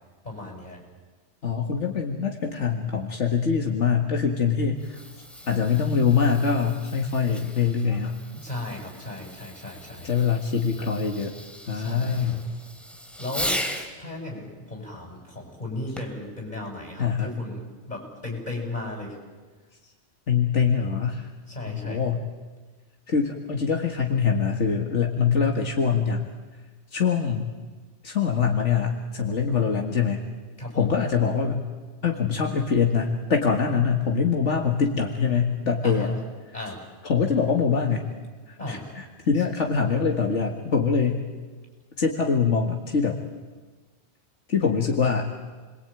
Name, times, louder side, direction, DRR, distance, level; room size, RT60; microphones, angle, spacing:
voice 1, 0.2-0.8 8.3-10.1 11.7-12.5 13.2-13.6 14.0-19.1 21.5-22.0 30.6-30.9 35.8-36.2 36.5-36.8 38.6-38.9, left 2 dB, 35° left, 0 dB, 8.3 m, -35 dB
voice 2, 1.4-8.2 10.0-11.3 11.7-12.5 17.0-17.3 20.3-21.3 21.7-22.2 23.1-26.3 26.9-27.5 28.0-30.2 30.8-31.6 32.0-36.1 37.0-38.1 38.5-41.2 42.0-43.2 44.5-45.3, left 6 dB, 80° left, 2 dB, 2.2 m, -24 dB
Fireworks, 4.6-13.9 16.0-16.3 17.0-17.1, equal, ahead, 2.9 m, -38 dB
29.5 x 22.5 x 9.1 m, 1.4 s
omnidirectional pair, 1.2 m